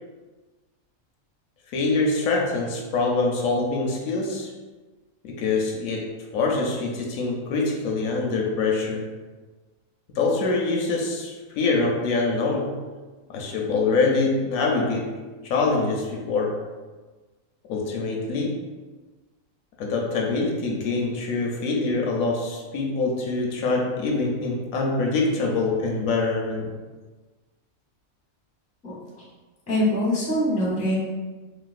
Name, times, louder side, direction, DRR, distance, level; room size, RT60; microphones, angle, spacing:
voice 1, 1.7-4.5 5.2-6.1 6.3-9.0 10.2-12.7 13.3-15.1 15.4-16.5 17.7-18.5 19.8-26.7, left 3 dB, 75° left, 0 dB, 0.9 m, -24 dB
voice 2, 29.7-31.0, equal, 10° left, -6 dB, 0.5 m, -23 dB
3.8 x 2.1 x 2.4 m, 1.3 s
omnidirectional pair, 1.5 m